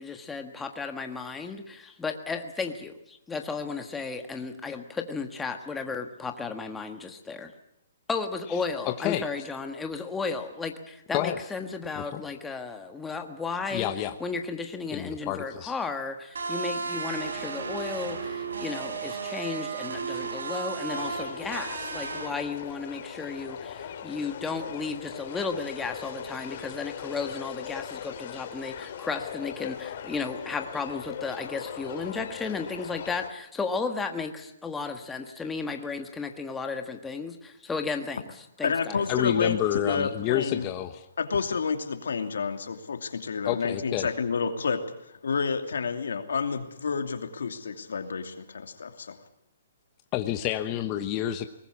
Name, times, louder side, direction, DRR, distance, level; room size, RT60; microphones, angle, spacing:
voice 1, 0.0-7.5 8.1-13.9 14.2-38.2 38.6-39.0, left 4 dB, 10° left, 5 dB, 1.4 m, -34 dB
voice 2, 8.8-9.2 11.1-11.4 12.0-12.2 13.7-14.1 14.9-15.7 39.1-41.1 43.4-44.1 50.1-51.5, left 12 dB, 25° left, 7 dB, 1.1 m, -29 dB
sound 1, 16.4-22.3, right 4 dB, 90° right, 4.2 m, -34 dB
sound 2, 20.9-33.3, left 9 dB, 50° left, 2.4 m, -40 dB
voice 3, 38.6-40.7 41.2-49.2, left 5 dB, 85° left, 7 dB, 2.7 m, -29 dB
22.0 x 19.5 x 8.6 m, 0.76 s
hypercardioid pair, 160°, 0 cm